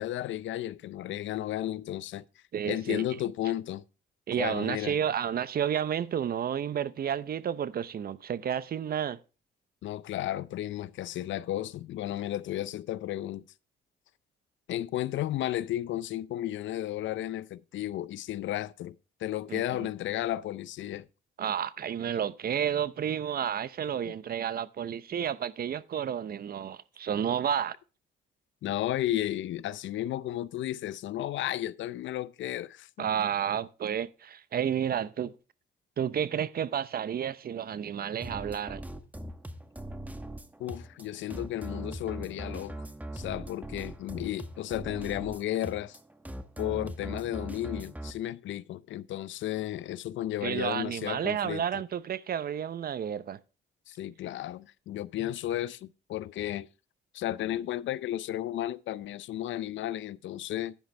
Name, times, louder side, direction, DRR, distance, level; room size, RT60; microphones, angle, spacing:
voice 1, 0.0-2.2 2.7-3.8 4.4-5.0 9.8-13.4 14.7-18.9 19.2-21.1 24.1-24.2 28.6-33.1 40.6-42.8 43.1-46.0 46.6-51.6 53.9-56.7 57.1-60.7, left 13 dB, 70° left, 0.5 m, -33 dB
voice 2, 2.5-3.0 4.3-9.2 19.5-19.9 21.4-27.8 33.0-35.3 36.0-38.8 50.4-53.4, right 9 dB, 50° right, 0.7 m, -31 dB
sound 1, 38.2-48.1, right 1 dB, 10° right, 1.1 m, -41 dB
10.5 x 10.5 x 3.3 m
cardioid pair, 90°, 20 cm